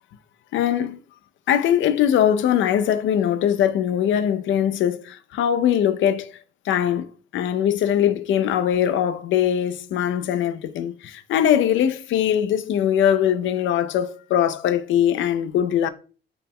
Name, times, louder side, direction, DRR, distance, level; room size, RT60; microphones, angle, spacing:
voice 1, 0.5-1.0 1.5-6.3 6.7-7.1 7.3-15.9, left 10 dB, 75° left, 0.4 m, -21 dB
4.3 x 2.2 x 3.5 m
cardioid pair, 90°, 20 cm